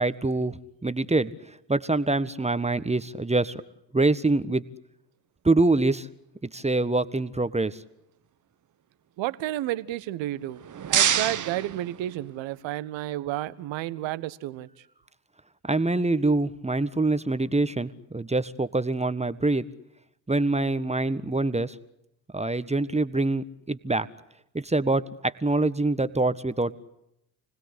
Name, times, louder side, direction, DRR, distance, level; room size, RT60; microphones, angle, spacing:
voice 1, 0.0-1.3 1.7-3.6 3.9-4.6 5.4-6.1 6.5-7.8 15.6-19.6 20.3-21.8 22.3-24.1 24.5-26.7, right 2 dB, 15° right, 1.6 m, -25 dB
voice 2, 9.2-10.6 10.9-14.7, right 14 dB, 65° right, 1.5 m, -31 dB
sound 1, 10.4-12.6, right 9 dB, 40° right, 1.3 m, -27 dB
30.0 x 20.0 x 8.4 m
hypercardioid pair, 50°, 49 cm